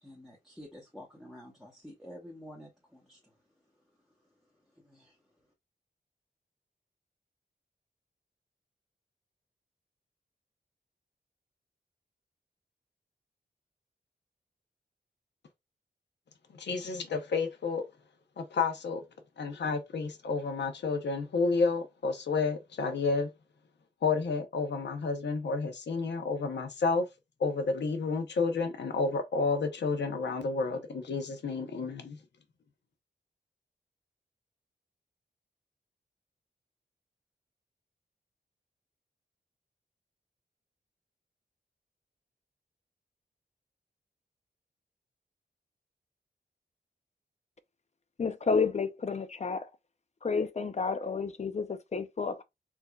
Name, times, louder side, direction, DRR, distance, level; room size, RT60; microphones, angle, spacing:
voice 1, 0.0-3.3 4.8-5.2, equal, ahead, 1.1 m, -49 dB
voice 2, 16.5-17.8 18.4-19.0 19.4-23.3 24.0-27.1 27.4-32.2, left 4 dB, 90° left, 0.8 m, -30 dB
voice 3, 48.2-49.7 50.2-52.4, left 5 dB, 40° left, 0.5 m, -30 dB
4.6 x 2.6 x 2.3 m
wide cardioid pair, 100°, 18 cm